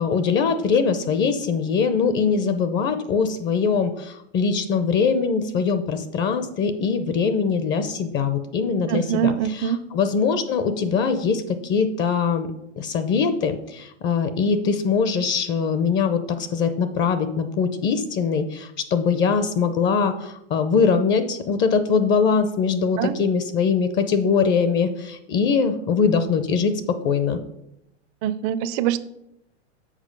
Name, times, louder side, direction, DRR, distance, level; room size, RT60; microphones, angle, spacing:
voice 1, 0.0-12.5 12.8-27.4, left 5 dB, 30° left, 11 dB, 0.6 m, -22 dB
voice 2, 8.9-9.9 23.0-23.2 28.2-29.0, right 10 dB, 45° right, 14 dB, 0.6 m, -24 dB
7.3 x 4.8 x 5.3 m, 0.81 s
hypercardioid pair, 125°, 35 cm